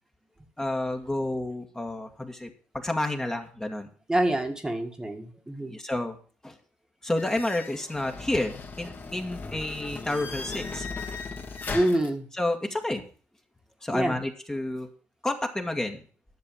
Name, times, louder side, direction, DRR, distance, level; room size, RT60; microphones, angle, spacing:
voice 1, 0.6-3.9 5.7-6.2 6.4-6.6 7.0-10.9 12.4-13.0 13.8-14.9 15.2-16.0, left 1 dB, 10° left, 3 dB, 1.8 m, -30 dB
voice 2, 4.1-5.7 11.7-12.3 13.9-14.2, right 1 dB, 15° right, 5 dB, 1.8 m, -26 dB
sound 1, 7.2-12.1, left 4 dB, 40° left, 2.5 m, -37 dB
11.0 x 6.8 x 7.0 m, 0.42 s
cardioid pair, 80°, 5 cm